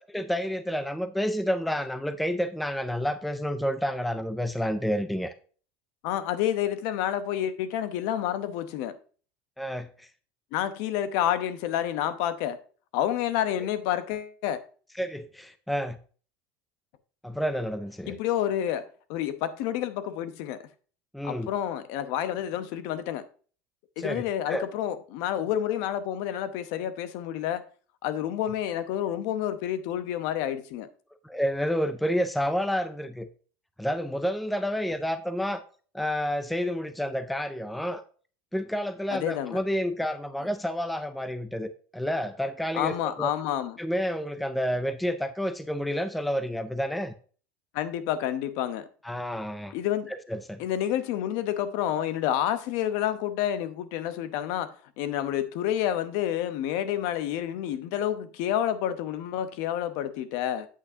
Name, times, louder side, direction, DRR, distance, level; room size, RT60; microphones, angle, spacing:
voice 1, 0.1-5.3 9.6-10.1 13.6-13.7 15.0-16.0 17.2-18.2 21.1-21.5 24.0-24.7 31.2-33.3 33.8-35.6 35.9-38.0 38.5-43.3 43.8-47.1 49.0-49.7 50.1-50.6, equal, ahead, 0.3 m, -29 dB
voice 2, 6.0-8.9 10.5-12.6 12.9-14.6 18.1-18.8 19.1-20.6 21.2-23.2 24.0-27.6 28.0-30.9 39.1-39.6 42.8-43.8 47.7-48.9 49.7-50.1 50.6-60.7, left 11 dB, 60° left, 0.8 m, -29 dB
8.6 x 8.2 x 2.7 m
cardioid pair, 175°, 7 cm